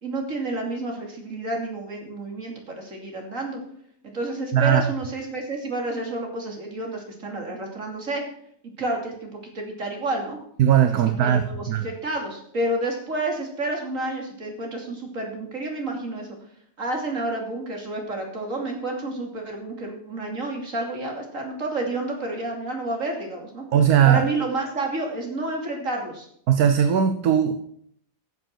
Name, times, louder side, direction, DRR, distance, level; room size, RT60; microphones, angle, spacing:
voice 1, 0.0-3.6 4.0-8.2 8.6-10.4 10.9-16.4 16.8-23.6 24.0-26.3, right 2 dB, 50° right, 1 dB, 3.2 m, -30 dB
voice 2, 4.5-4.8 10.6-11.9 23.7-24.3 26.5-27.6, right 9 dB, 65° right, 8 dB, 1.3 m, -19 dB
13.5 x 7.6 x 6.0 m, 0.67 s
omnidirectional pair, 1.7 m